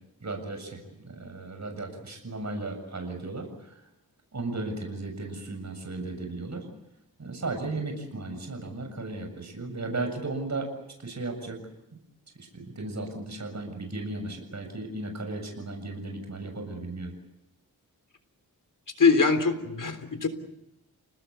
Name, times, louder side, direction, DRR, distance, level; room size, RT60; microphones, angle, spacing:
voice 1, 0.2-3.8 4.3-6.7 7.2-10.7 11.0-11.6 12.4-17.1, right 2 dB, 50° right, 5 dB, 7.4 m, -35 dB
voice 2, 19.0-20.3, left 4 dB, 60° left, 9 dB, 3.7 m, -22 dB
30.0 x 19.5 x 8.4 m, 0.84 s
cardioid pair, 70°, 36 cm